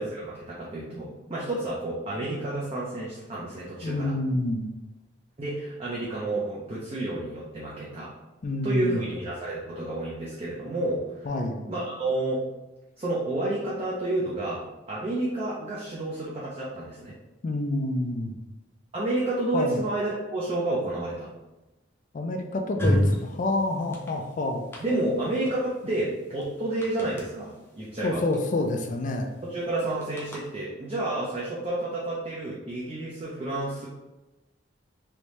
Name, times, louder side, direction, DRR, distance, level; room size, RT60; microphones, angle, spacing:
voice 1, 0.0-4.1 5.4-8.1 8.6-11.3 11.6-12.4 13.0-14.6 14.9-17.1 18.9-21.3 24.8-28.2 29.4-33.9, right 2 dB, 35° right, -6 dB, 0.6 m, -30 dB
voice 2, 3.8-4.7 8.4-9.0 11.2-11.7 17.4-18.4 19.5-19.8 22.1-24.6 28.0-29.3, left 2 dB, 45° left, 3 dB, 0.4 m, -28 dB
sound 1, 22.8-23.3 23.8-24.1 24.7-24.8 25.5-25.6 25.8-25.9 26.4-26.5 26.8-27.2 28.3-28.4 28.7-28.9 30.0-30.4, equal, 15° left, 0.7 m, -24 dB
3.3 x 2.7 x 3.0 m, 1.0 s
head